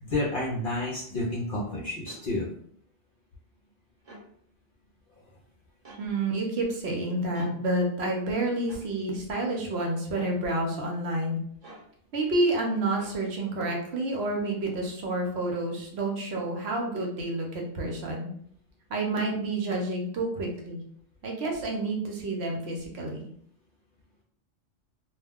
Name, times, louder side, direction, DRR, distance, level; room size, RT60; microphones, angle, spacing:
voice 1, 0.0-2.5, left 2 dB, 55° left, -4 dB, 0.6 m, -30 dB
sound 1, 2.1-2.2 4.0-4.3 5.8-6.0 7.3-7.5 8.7-8.9 10.1-10.4 11.6-11.9 13.0-13.2, right 2 dB, 35° right, 0.8 m, -47 dB
voice 2, 6.0-11.4 12.1-18.3 18.9-20.8 21.2-23.3, right 2 dB, 65° right, 0 dB, 0.9 m, -29 dB
2.3 x 2.1 x 3.5 m, 0.65 s
omnidirectional pair, 1.3 m